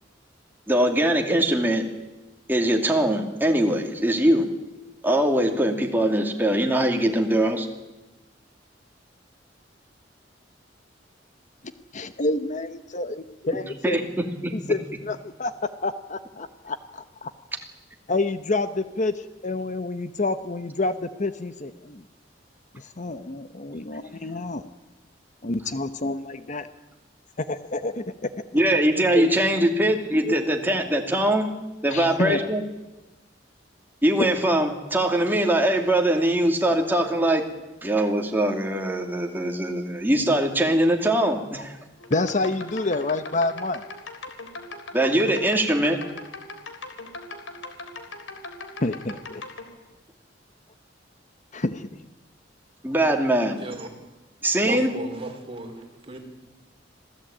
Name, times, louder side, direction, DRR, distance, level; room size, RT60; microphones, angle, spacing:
voice 1, 0.7-1.8 2.5-4.5 5.0-7.7 13.8-14.0 14.4-14.5 28.5-31.5 31.8-32.6 34.0-37.4 37.8-41.8 44.9-46.0 52.8-53.6 54.4-54.9, right 1 dB, 10° right, 2 dB, 2.6 m, -22 dB
voice 2, 11.9-14.0 14.5-15.5 15.8-17.3 18.1-22.0 22.7-24.6 25.4-26.7 27.4-28.3 29.1-29.3 30.2-30.3 31.9-32.5 34.2-34.3 42.1-43.8 48.8-49.4 51.5-51.9, left 2 dB, 40° left, 11 dB, 1.0 m, -28 dB
sound 1, 42.0-49.6, left 3 dB, 80° left, 3.4 m, -39 dB
voice 3, 53.4-53.9 54.6-56.2, right 2 dB, 30° right, 3 dB, 4.2 m, -36 dB
26.5 x 16.5 x 8.9 m, 1.1 s
head